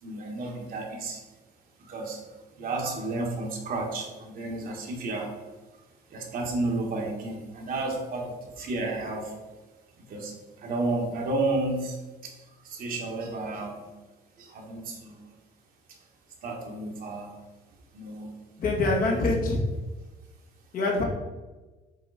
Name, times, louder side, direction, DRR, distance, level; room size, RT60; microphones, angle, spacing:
voice 1, 0.0-1.2 1.8-2.2 2.5-5.3 6.1-9.3 10.1-12.0 12.2-13.8 14.4-15.3 16.4-17.3 17.9-18.3 18.8-19.2, right 2 dB, 60° right, -1 dB, 1.7 m, -32 dB
voice 2, 18.6-19.6 20.7-21.0, left 2 dB, 55° left, -1 dB, 1.7 m, -24 dB
7.3 x 3.8 x 4.2 m, 1.2 s
cardioid pair, 110°, 17 cm